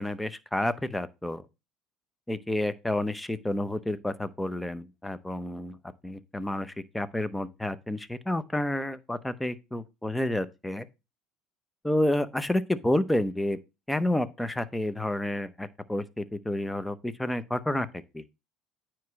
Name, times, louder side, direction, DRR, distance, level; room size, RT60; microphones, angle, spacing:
voice 1, 0.0-1.4 2.3-5.8 6.0-10.9 11.8-13.6 13.9-18.2, left 1 dB, 5° left, 0.8 m, -30 dB
9.3 x 3.1 x 6.2 m
supercardioid pair, 100°, 0 cm